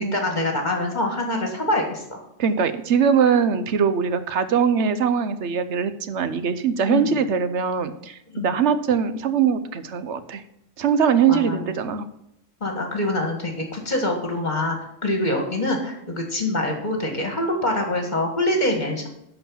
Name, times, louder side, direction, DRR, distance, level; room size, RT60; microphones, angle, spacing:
voice 1, 0.1-2.2 6.9-7.1 8.3-8.5 11.3-11.6 12.6-14.8 15.0-19.1, left 1 dB, 35° left, 2 dB, 2.0 m, -25 dB
voice 2, 2.4-10.4 10.8-12.1, right 7 dB, 65° right, 12 dB, 1.0 m, -22 dB
11.0 x 4.6 x 7.2 m, 0.77 s
omnidirectional pair, 1.3 m